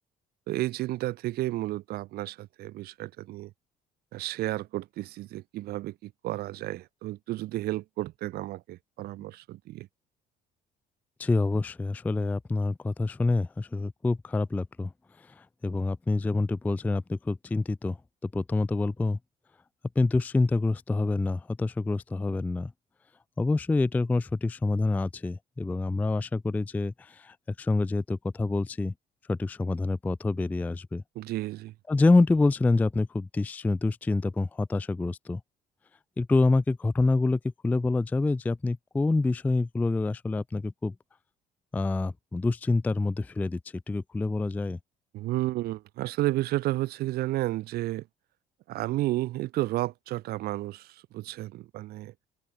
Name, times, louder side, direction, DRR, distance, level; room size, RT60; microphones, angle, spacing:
voice 1, 0.5-3.5 4.1-9.9 31.2-31.7 45.1-48.1 48.7-52.1, right 16 dB, 65° right, 0.5 m, -32 dB
voice 2, 11.2-14.9 15.2-18.0 18.2-19.2 20.0-22.7 23.4-28.9 29.3-31.0 31.9-35.4 36.2-40.9 41.7-43.6 43.9-44.8, left 3 dB, 10° left, 0.3 m, -27 dB
cardioid pair, 110°, 17 cm